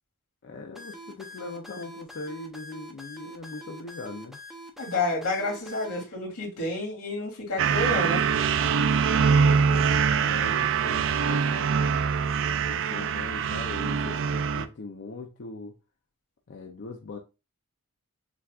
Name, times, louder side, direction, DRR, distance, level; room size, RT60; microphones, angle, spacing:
voice 1, 0.4-4.4 9.2-12.0 12.6-15.7 16.5-17.2, left 3 dB, 50° left, 0.6 m, -40 dB
sound 1, 0.8-6.0, equal, ahead, 0.6 m, -44 dB
voice 2, 4.8-8.3, left 2 dB, 85° left, 2.0 m, -29 dB
sound 2, 7.6-14.7, right 6 dB, 60° right, 0.3 m, -24 dB
7.1 x 2.4 x 2.4 m
head